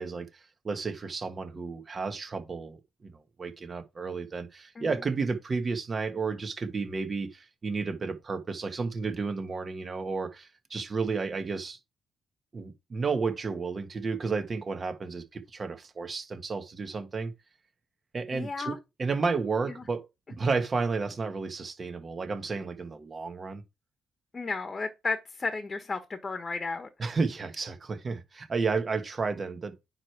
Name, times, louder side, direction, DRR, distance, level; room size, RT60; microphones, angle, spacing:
voice 1, 0.0-11.8 12.5-17.3 18.1-23.6 27.0-29.9, right 4 dB, 40° right, 1.4 m, -32 dB
voice 2, 18.3-18.8 24.3-26.9, left 4 dB, 35° left, 1.1 m, -33 dB
9.6 x 3.2 x 4.6 m
cardioid pair, 75°, 0 cm